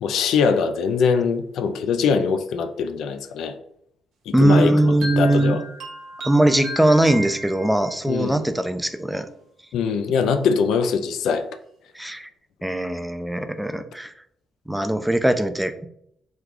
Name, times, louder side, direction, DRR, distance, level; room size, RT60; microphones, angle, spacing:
voice 1, 0.0-3.5 4.3-5.6 8.1-8.4 9.7-11.5, left 5 dB, 80° left, 0.3 m, -22 dB
voice 2, 4.3-5.6 6.2-9.3 11.9-12.3 12.6-14.1 14.7-15.9, right 1 dB, 5° right, 0.3 m, -20 dB
sound 1, 4.6-8.1, equal, 75° right, 0.8 m, -36 dB
3.1 x 2.2 x 3.7 m
cardioid pair, 90°, 0 cm